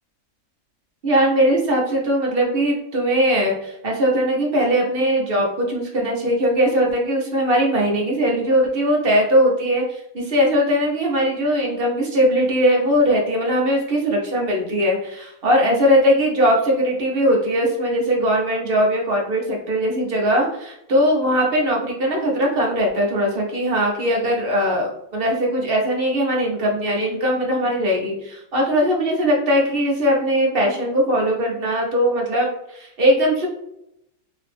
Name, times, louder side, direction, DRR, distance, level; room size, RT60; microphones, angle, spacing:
voice 1, 1.0-33.5, equal, 45° right, -1 dB, 0.9 m, -20 dB
3.1 x 2.9 x 3.4 m, 0.79 s
omnidirectional pair, 1.6 m